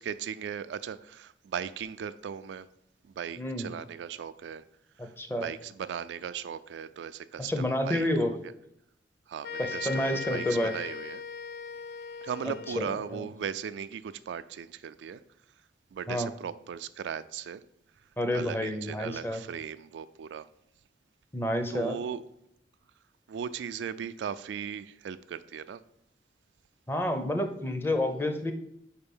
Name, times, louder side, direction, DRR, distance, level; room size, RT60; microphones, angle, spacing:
voice 1, 0.0-2.7 3.0-4.6 5.0-5.1 5.4-8.5 9.3-11.2 12.2-15.2 15.9-17.6 18.3-20.5 21.7-22.2 23.3-25.8, right 7 dB, 85° right, 0.3 m, -37 dB
voice 2, 3.4-3.7 5.0-5.5 7.4-8.3 9.6-10.7 12.7-12.8 13.1-13.3 16.1-16.3 18.2-19.4 21.3-22.0 26.9-28.5, left 1 dB, 15° left, 0.6 m, -29 dB
sound 1, 9.4-13.1, left 5 dB, 60° left, 0.4 m, -39 dB
4.8 x 4.4 x 5.4 m
head